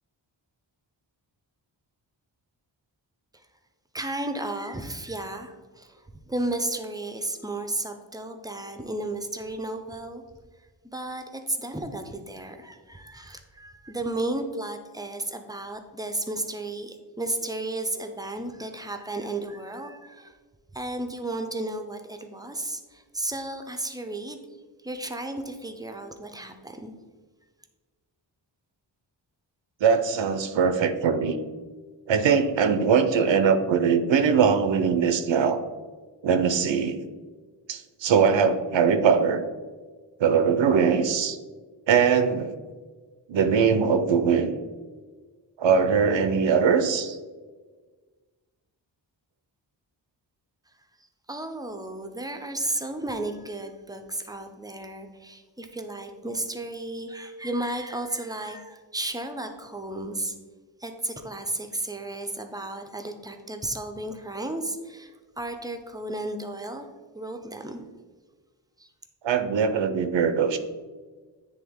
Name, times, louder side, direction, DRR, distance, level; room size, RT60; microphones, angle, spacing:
voice 1, 3.9-10.2 10.9-20.3 20.7-24.4 24.8-26.9 51.3-60.4 60.8-66.9 67.1-67.8 68.8-68.9, right 2 dB, 10° right, 6 dB, 0.4 m, -33 dB
voice 2, 29.8-31.4 32.1-35.6 36.2-37.0 37.7-39.4 40.2-41.4 41.9-42.6 43.3-44.6 45.6-47.2 69.2-70.6, right 6 dB, 85° right, 10 dB, 0.6 m, -21 dB
9.6 x 3.4 x 3.5 m, 1.4 s
wide cardioid pair, 155°, 44 cm